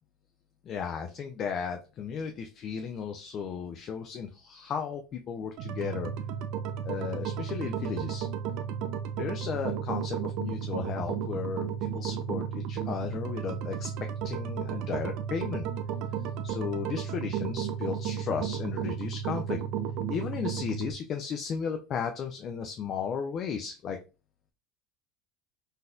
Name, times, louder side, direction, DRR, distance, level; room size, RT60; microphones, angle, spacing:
voice 1, 0.6-6.1 6.8-8.3 9.2-13.9 14.2-15.7 16.4-19.6 20.1-24.0, left 6 dB, 45° left, 5 dB, 0.4 m, -35 dB
sound 1, 5.6-20.9, right 8 dB, 60° right, 0.4 m, -33 dB
3.9 x 2.6 x 2.3 m, 0.31 s
supercardioid pair, 95°, 0 cm